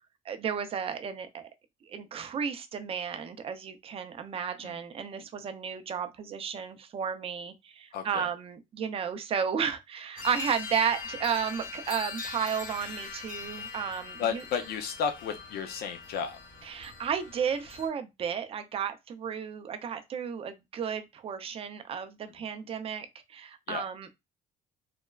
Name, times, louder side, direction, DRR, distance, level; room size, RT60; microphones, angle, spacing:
voice 1, 0.3-1.4 1.9-14.4 16.6-24.1, right 7 dB, 35° right, 0.4 m, -33 dB
voice 2, 7.9-8.3 14.2-16.4 23.7-23.8, left 7 dB, 70° left, 0.5 m, -33 dB
sound 1, 10.2-17.9, left 5 dB, 55° left, 1.0 m, -41 dB
3.1 x 2.1 x 2.2 m
cardioid pair, 110°, 17 cm